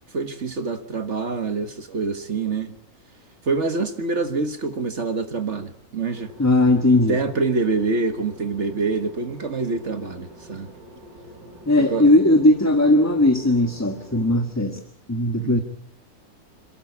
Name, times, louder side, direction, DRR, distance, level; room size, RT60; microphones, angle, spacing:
voice 1, 0.1-2.7 3.4-6.3 7.1-10.7 11.8-12.1 14.4-14.5 15.4-15.6, right 4 dB, 50° right, 8 dB, 1.7 m, -26 dB
sound 1, 6.1-14.4, equal, 75° right, 6.5 m, -45 dB
voice 2, 6.4-7.2 11.7-14.8 15.1-15.6, left 1 dB, 10° left, 6 dB, 1.3 m, -18 dB
27.5 x 13.0 x 9.7 m, 0.70 s
omnidirectional pair, 1.6 m